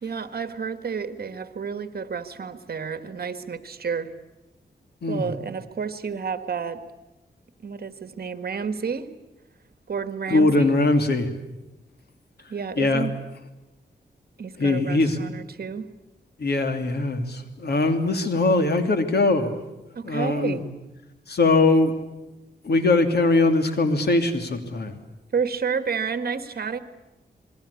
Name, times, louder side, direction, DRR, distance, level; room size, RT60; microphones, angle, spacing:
voice 1, 0.0-4.1 5.1-6.8 7.6-9.1 9.9-10.7 12.5-13.1 14.4-15.9 19.9-20.7 25.3-26.8, right 6 dB, 60° right, 10 dB, 1.7 m, -30 dB
voice 2, 5.0-5.3 10.3-11.3 12.8-13.1 14.6-15.2 16.4-19.6 20.0-20.6 21.3-21.9 22.6-24.9, left 2 dB, 65° left, 6 dB, 2.9 m, -21 dB
28.5 x 21.5 x 8.5 m, 1.0 s
wide cardioid pair, 120°, 18 cm